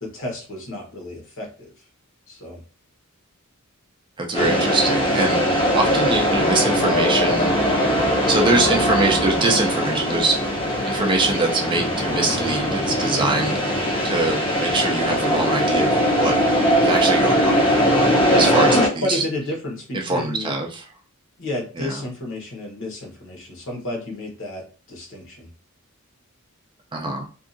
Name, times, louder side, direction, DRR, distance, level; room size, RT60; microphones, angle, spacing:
voice 1, 0.0-1.7 2.3-2.6 5.9-6.1 18.3-20.5 21.4-25.5, left 1 dB, 60° left, 0 dB, 1.0 m, -30 dB
voice 2, 4.2-5.4 5.7-7.5 8.3-16.3 16.8-18.8 19.1-19.2 19.9-20.8 21.8-22.0 26.9-27.3, right 2 dB, 20° right, 1 dB, 0.4 m, -23 dB
sound 1, 4.3-18.9, equal, 25° left, 0.6 m, -20 dB
2.7 x 2.4 x 2.5 m, 0.38 s
head